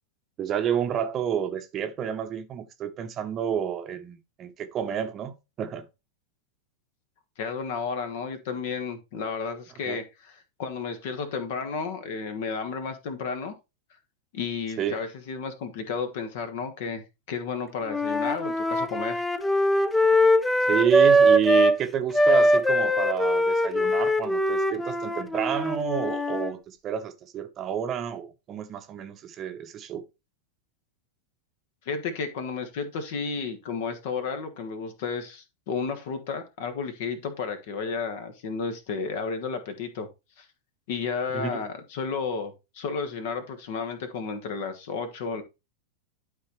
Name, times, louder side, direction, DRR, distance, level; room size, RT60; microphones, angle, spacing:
voice 1, 0.4-5.9 9.9-10.0 14.8-15.0 20.7-30.0 41.3-41.6, right 9 dB, 30° right, 0.9 m, -29 dB
voice 2, 7.4-13.5 14.3-19.2 31.8-40.1 40.4-40.5 40.9-45.4, left 5 dB, 50° left, 1.4 m, -32 dB
Wind instrument woodwind instrument, 17.9-21.8 22.1-26.5, equal, 10° left, 0.6 m, -22 dB
12.0 x 4.0 x 3.1 m
figure-of-eight pair, 90°, 0 cm